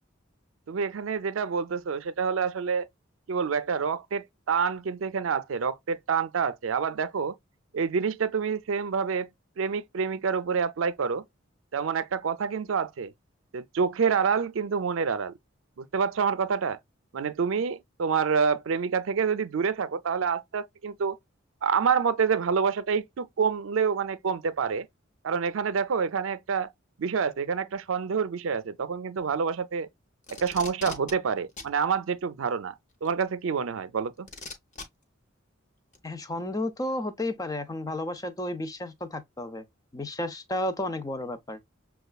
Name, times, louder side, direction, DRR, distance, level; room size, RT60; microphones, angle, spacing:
voice 1, 0.7-2.9 3.3-7.3 7.7-9.3 9.6-11.2 11.7-13.1 13.5-15.3 15.8-16.8 17.1-21.2 21.6-24.9 25.2-26.7 27.0-29.9 30.3-32.7 33.0-34.3, right 6 dB, 75° right, 0.4 m, -27 dB
Packing tape duct tape, 30.2-31.1 31.6-31.7 33.0-33.1 34.3-34.8 35.9-36.0, left 3 dB, 35° left, 0.9 m, -39 dB
voice 2, 36.0-39.6 39.9-41.6, left 1 dB, 15° left, 0.5 m, -32 dB
6.4 x 2.3 x 2.2 m
head